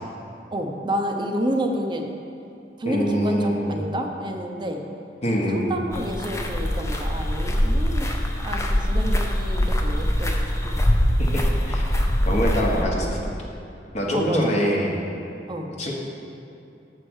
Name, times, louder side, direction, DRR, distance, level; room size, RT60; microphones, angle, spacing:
voice 1, 0.5-2.1 2.8-4.8 5.5-8.1 8.4-10.3 10.6-10.8 14.1-14.5 15.5-15.7, equal, 25° right, 3 dB, 0.6 m, -29 dB
voice 2, 2.8-3.8 5.2-5.8 11.2-11.8 12.2-13.1 13.9-15.0 15.8-15.9, equal, 40° left, -2 dB, 1.0 m, -24 dB
sound 1, 5.9-12.8, equal, 15° left, 0.6 m, -23 dB
7.3 x 4.7 x 6.2 m, 2.7 s
head